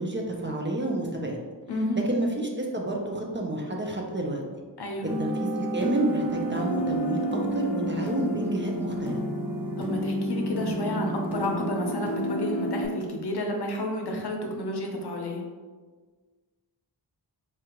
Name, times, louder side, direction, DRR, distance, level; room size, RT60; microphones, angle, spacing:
voice 1, 0.0-1.4 2.1-4.4 5.2-7.2 7.5-9.2, right 1 dB, 25° right, 0 dB, 0.6 m, -29 dB
voice 2, 1.7-2.1 4.8-5.2 9.8-15.4, left 1 dB, 65° left, 2 dB, 0.7 m, -31 dB
sound 1, 5.1-12.9, right 1 dB, 5° right, 1.0 m, -30 dB
4.5 x 2.4 x 2.9 m, 1.4 s
wide cardioid pair, 60°, 43 cm